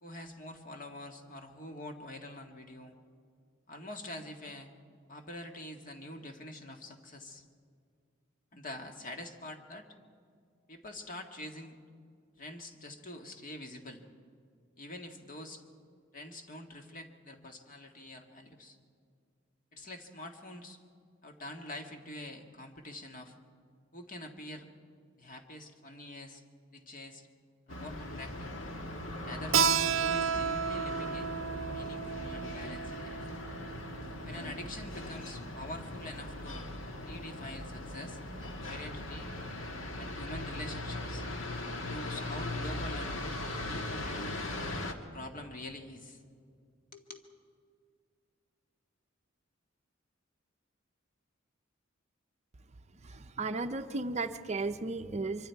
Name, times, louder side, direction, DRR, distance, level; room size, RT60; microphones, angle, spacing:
voice 1, 0.0-2.9 3.7-4.7 5.1-7.4 8.5-9.9 10.7-11.8 12.4-14.0 14.8-15.6 16.1-18.8 19.7-20.8 21.2-23.3 23.9-24.7 25.2-26.4 26.7-27.3 27.7-28.5 29.2-31.3 31.7-33.2 34.2-36.7 37.1-38.2 38.6-39.3 40.0-41.3 41.9-43.2 43.6-44.2 45.1-46.2 46.9-47.2, left 1 dB, 40° left, 4 dB, 1.8 m, -45 dB
sound 1, 27.7-44.9, left 1 dB, 75° left, 1.7 m, -39 dB
Keyboard (musical), 29.5-34.8, right 7 dB, 75° right, 0.6 m, -32 dB
voice 2, 53.0-55.5, right 3 dB, 35° right, 8 dB, 0.6 m, -35 dB
24.5 x 24.5 x 4.7 m, 2.2 s
head